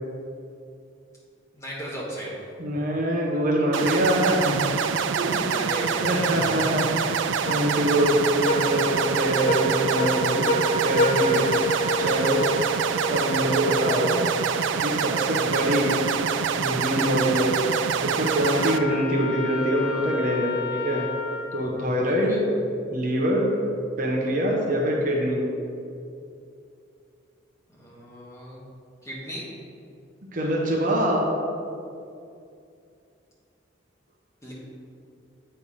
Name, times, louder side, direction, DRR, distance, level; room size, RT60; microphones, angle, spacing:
voice 1, 1.5-2.3 5.5-6.5 22.0-22.4 27.8-28.6 29.0-29.4 34.4-34.5, equal, 15° left, -7 dB, 1.6 m, -36 dB
voice 2, 2.6-4.6 5.2-5.5 6.0-7.2 7.5-10.5 10.8-11.5 12.0-12.4 13.1-14.2 14.8-15.9 16.6-17.5 18.0-21.0 21.5-22.4 22.9-23.5 24.0-25.4 30.3-31.3, equal, 40° right, -2 dB, 0.8 m, -24 dB
sound 1, 3.7-18.8, right 6 dB, 75° right, 0.3 m, -26 dB
sound 2, 7.5-15.0, equal, 45° left, 0.6 m, -28 dB
Trumpet, 18.3-21.7, left 6 dB, 85° left, 0.7 m, -33 dB
8.3 x 3.3 x 5.6 m, 2.5 s
head